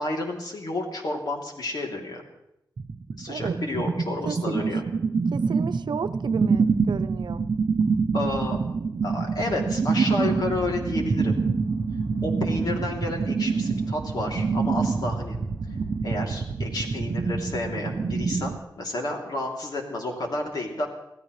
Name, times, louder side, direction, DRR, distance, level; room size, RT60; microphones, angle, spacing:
voice 1, 0.0-2.2 3.2-4.8 8.1-8.6 9.0-11.4 12.2-15.4 16.0-20.9, left 2 dB, 60° left, 0 dB, 3.0 m, -30 dB
sound 1, 2.8-18.6, right 5 dB, 55° right, 0.8 m, -26 dB
voice 2, 3.3-3.6 4.2-4.7 5.3-7.4, right 6 dB, 85° right, 9 dB, 0.8 m, -33 dB
sound 2, 9.9-16.5, left 1 dB, 25° left, 1.4 m, -40 dB
25.5 x 16.0 x 3.3 m, 0.82 s
wide cardioid pair, 160°, 7 cm